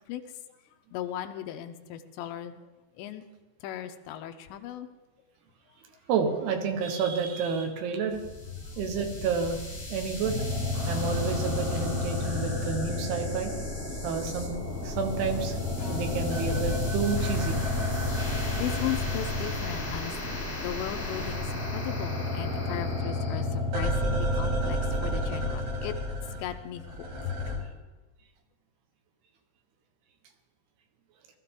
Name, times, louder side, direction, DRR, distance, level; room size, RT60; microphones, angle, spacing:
voice 1, 0.9-2.6 3.0-3.2 3.6-4.9 18.6-26.0 26.3-27.6, left 11 dB, 85° left, 7 dB, 3.0 m, -37 dB
voice 2, 6.1-8.2 8.8-9.6 9.9-10.4 10.9-13.5 14.0-14.6 14.8-15.6 15.9-17.6, right 5 dB, 70° right, 5 dB, 3.1 m, -29 dB
sound 1, 8.1-23.4, left 1 dB, 15° left, 5.6 m, -37 dB
sound 2, 10.2-14.0 14.3-20.3 20.5-27.6, left 2 dB, 55° right, 4.3 m, -31 dB
Acoustic guitar, 15.8-22.1 22.5-22.6 23.0-23.1, left 4 dB, 40° left, 4.3 m, -47 dB
19.5 x 13.5 x 3.7 m, 1.2 s
omnidirectional pair, 5.1 m